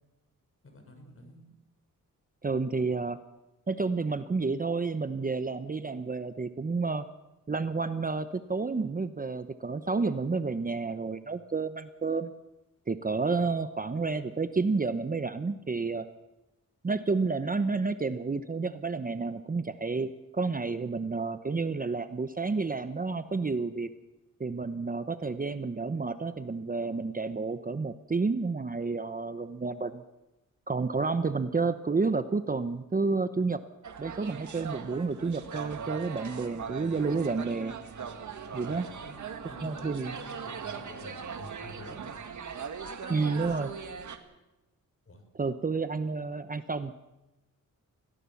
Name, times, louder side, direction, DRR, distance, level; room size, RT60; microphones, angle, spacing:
voice 1, 0.6-1.5 38.7-42.2 45.1-45.2 46.1-46.4, left 1 dB, 40° left, 5 dB, 6.1 m, -49 dB
voice 2, 2.4-3.2 3.7-7.0 7.5-12.3 12.9-16.1 16.8-23.9 24.4-30.0 30.7-33.6 34.0-37.7 38.5-38.9 39.6-40.1 43.1-43.7 45.4-47.0, right 4 dB, 25° right, 11 dB, 0.9 m, -30 dB
sound 1, 33.8-44.2, right 6 dB, 60° right, 2.0 m, -40 dB
23.0 x 17.0 x 7.2 m, 0.98 s
cardioid pair, 85°, 33 cm